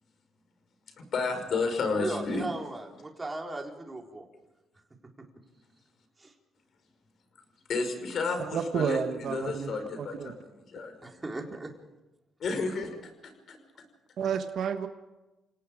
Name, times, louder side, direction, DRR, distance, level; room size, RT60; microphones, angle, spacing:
voice 1, 1.1-2.5 7.7-11.2 12.4-13.6, left 4 dB, 60° left, 6 dB, 5.2 m, -32 dB
voice 2, 2.0-4.3 5.2-5.3 6.2-6.3 11.0-11.7, right 2 dB, 20° right, 1 dB, 4.0 m, -37 dB
voice 3, 8.4-10.3 14.2-14.9, right 7 dB, 65° right, 7 dB, 1.3 m, -31 dB
29.5 x 18.0 x 5.1 m, 1.1 s
cardioid pair, 90°, 0 cm